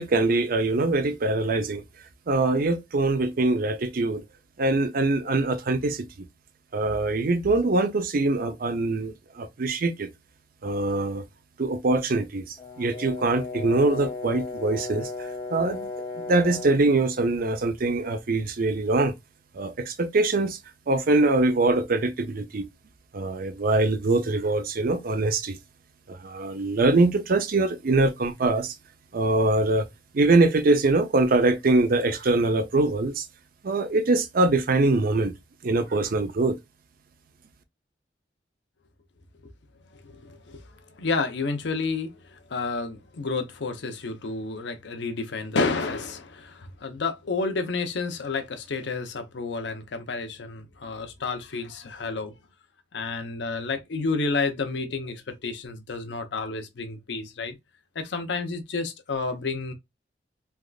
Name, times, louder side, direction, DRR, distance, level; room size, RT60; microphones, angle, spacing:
voice 1, 0.0-1.8 2.3-4.2 4.6-6.1 6.7-10.1 10.6-11.2 11.6-15.9 16.2-19.1 19.5-20.6 20.9-22.7 23.1-25.6 26.1-28.7 29.1-29.9 30.1-33.3 33.6-35.3 35.6-36.6, right 2 dB, 55° right, 0.5 m, -23 dB
Brass instrument, 12.6-16.8, left 3 dB, 20° left, 1.1 m, -35 dB
voice 2, 40.0-40.6 41.0-52.3 52.9-57.5 58.0-59.7, left 4 dB, 70° left, 0.6 m, -30 dB
3.4 x 2.4 x 2.3 m
head